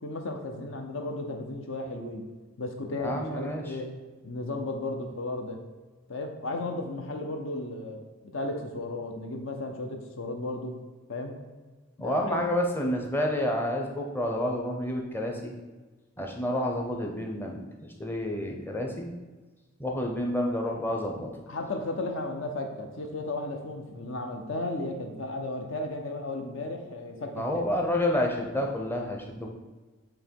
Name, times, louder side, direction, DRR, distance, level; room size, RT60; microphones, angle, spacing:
voice 1, 0.0-2.2 2.6-3.9 4.2-5.6 6.1-8.0 8.3-10.7 11.1-11.3 12.0-12.4 21.5-27.7, left 2 dB, 60° left, 4 dB, 0.7 m, -34 dB
voice 2, 2.9-3.8 12.0-15.5 16.2-19.1 19.8-21.3 27.3-29.5, left 1 dB, 10° left, 1 dB, 0.6 m, -29 dB
7.5 x 2.9 x 4.5 m, 1.3 s
head